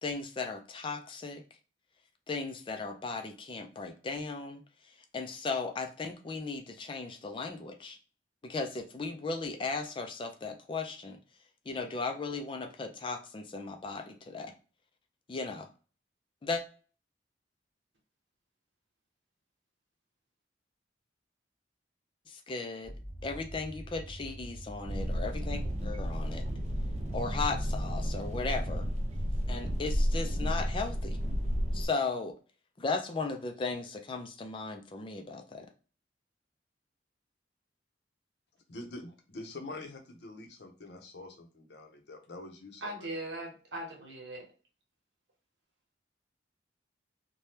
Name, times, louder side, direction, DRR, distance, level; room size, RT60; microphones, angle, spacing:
voice 1, 0.0-1.4 2.3-4.6 5.1-8.0 8.4-11.2 11.7-14.5 15.3-15.7 16.4-16.6 22.3-22.9 23.2-26.4 27.1-28.9 29.5-31.2 31.7-32.3 32.8-35.7, left 4 dB, 25° left, 5 dB, 0.3 m, -36 dB
sound 1, 22.8-30.2, equal, 15° right, 1.0 m, -45 dB
sound 2, 24.8-31.9, equal, 35° right, 0.4 m, -32 dB
voice 2, 38.7-43.1, left 2 dB, 65° left, 4 dB, 0.7 m, -45 dB
voice 3, 42.8-44.5, right 1 dB, 70° right, 0 dB, 1.0 m, -39 dB
2.7 x 2.2 x 3.2 m, 0.37 s
head